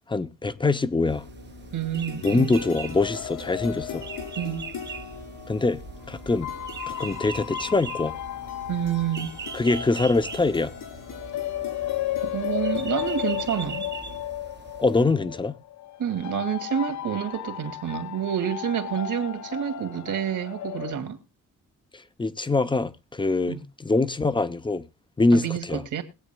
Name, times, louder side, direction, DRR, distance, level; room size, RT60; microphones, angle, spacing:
voice 1, 0.1-1.2 2.2-4.1 5.5-5.8 6.1-6.5 6.9-8.1 9.5-10.7 14.8-15.5 21.9-24.8 25.2-25.8, left 3 dB, 15° left, 0.7 m, -24 dB
sound 1, 1.0-14.2, left 6 dB, 80° left, 5.6 m, -42 dB
sound 2, 1.1-15.0, right 7 dB, 35° right, 0.9 m, -41 dB
voice 2, 1.7-2.5 4.4-4.7 8.7-9.3 12.2-13.9 16.0-21.2 23.5-23.6 25.3-26.0, right 9 dB, 65° right, 2.5 m, -28 dB
sound 3, 3.0-5.5 6.2-20.9, left 13 dB, 60° left, 0.5 m, -34 dB
21.0 x 8.6 x 2.3 m
cardioid pair, 135°, 32 cm